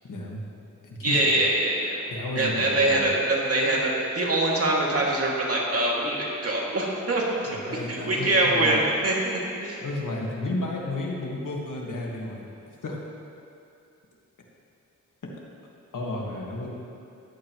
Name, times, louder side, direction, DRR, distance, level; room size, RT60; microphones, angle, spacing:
voice 1, 0.1-0.4 0.9-1.4 2.1-3.1 7.5-8.8 9.8-12.5 12.8-13.0 15.9-16.8, left 2 dB, 75° left, -2 dB, 1.8 m, -32 dB
voice 2, 1.0-2.0 2.3-7.2 7.9-9.8, right 2 dB, 50° right, -4 dB, 2.4 m, -24 dB
14.5 x 11.0 x 3.1 m, 2.6 s
cardioid pair, 75°, 31 cm